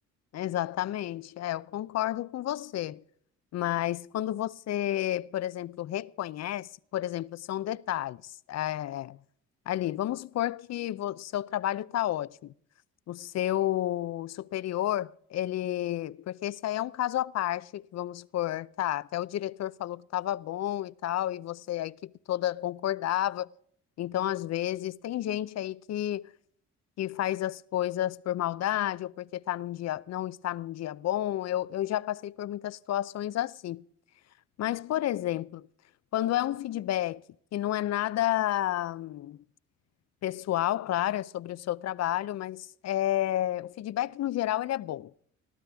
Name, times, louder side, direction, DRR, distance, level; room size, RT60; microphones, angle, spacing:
voice 1, 0.3-3.0 3.5-9.2 9.7-12.5 13.1-23.5 24.0-26.3 27.0-33.8 34.6-35.7 36.1-37.2 37.5-39.4 40.2-45.1, left 13 dB, 60° left, 0.6 m, -31 dB
21.0 x 14.5 x 3.5 m
cardioid pair, 90°, 30 cm